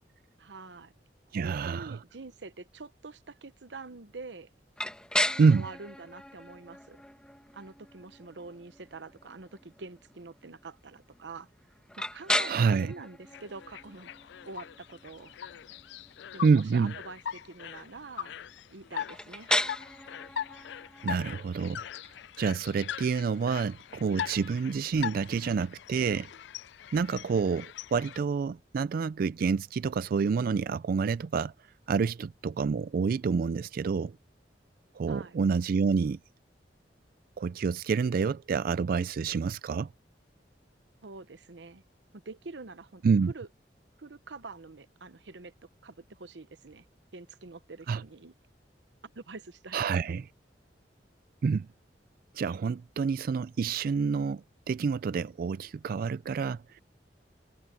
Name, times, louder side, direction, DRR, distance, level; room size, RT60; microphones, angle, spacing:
voice 1, 0.4-0.9 1.3-4.5 5.6-7.0 7.5-11.5 12.0-14.1 14.5-15.3 16.3-18.4 18.7-19.5 35.1-35.4 41.0-41.8 42.1-43.5 44.0-45.5 45.8-46.9 47.1-48.3 49.0-50.2, right 3 dB, 90° right, 0.9 m, -45 dB
voice 2, 1.3-2.0 5.4-5.7 12.5-12.9 16.4-16.9 21.0-21.8 22.4-26.3 26.9-31.5 31.9-34.2 34.9-36.2 37.4-39.9 43.0-43.3 47.9-48.0 49.7-50.2 51.4-51.7 52.3-56.8, right 5 dB, 55° right, 0.3 m, -28 dB
sound 1, 4.8-24.5, left 1 dB, 5° left, 1.7 m, -37 dB
sound 2, 13.3-28.2, left 8 dB, 75° left, 0.4 m, -41 dB
head